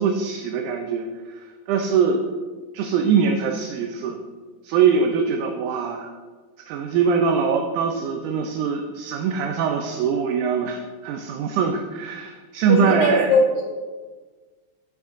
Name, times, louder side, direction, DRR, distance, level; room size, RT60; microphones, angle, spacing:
voice 1, 0.0-2.2 2.7-4.2 4.6-6.1 6.7-13.4, right 6 dB, 80° right, 3 dB, 2.0 m, -22 dB
voice 2, 12.7-13.6, left 3 dB, 75° left, 0 dB, 1.8 m, -20 dB
11.0 x 6.5 x 2.5 m, 1.4 s
omnidirectional pair, 3.8 m